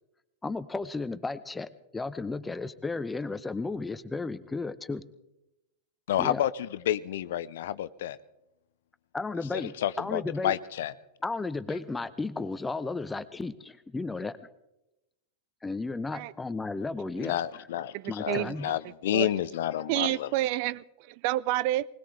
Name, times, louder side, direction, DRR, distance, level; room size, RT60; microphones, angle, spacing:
voice 1, 0.4-5.0 6.2-6.5 9.1-10.6 11.2-14.4 15.6-17.7 18.1-18.7, left 3 dB, 10° left, 0.8 m, -34 dB
voice 2, 6.1-8.2 9.5-10.9 17.2-20.3, left 12 dB, 65° left, 0.6 m, -30 dB
voice 3, 17.9-18.5 19.1-19.3 19.9-20.8 21.2-21.9, right 16 dB, 55° right, 0.4 m, -28 dB
20.5 x 20.5 x 3.3 m
figure-of-eight pair, 95°, 0 cm